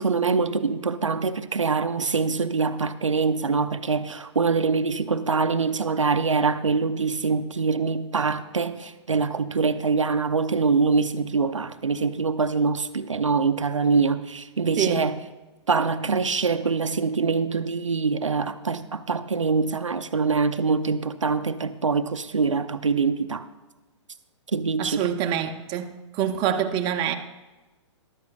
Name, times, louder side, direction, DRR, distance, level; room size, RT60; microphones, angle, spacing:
voice 1, 0.0-15.2 15.7-23.5 24.5-25.0, right 4 dB, 90° right, 0.6 m, -24 dB
voice 2, 24.8-27.2, right 9 dB, 30° right, 0.8 m, -26 dB
14.0 x 12.0 x 2.4 m
figure-of-eight pair, 120°, 16 cm